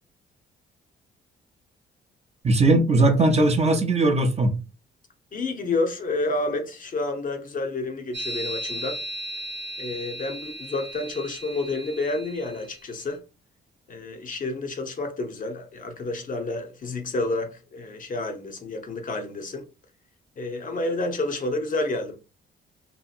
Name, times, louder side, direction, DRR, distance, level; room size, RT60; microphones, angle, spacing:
voice 1, 2.4-4.5, right 2 dB, 30° right, 0.6 m, -19 dB
voice 2, 5.3-9.0 9.8-13.2 13.9-19.7 20.4-22.2, left 2 dB, 45° left, 0.7 m, -29 dB
sound 1, 8.1-12.8, right 1 dB, 60° right, 0.9 m, -36 dB
2.8 x 2.5 x 2.5 m
cardioid pair, 90°, 20 cm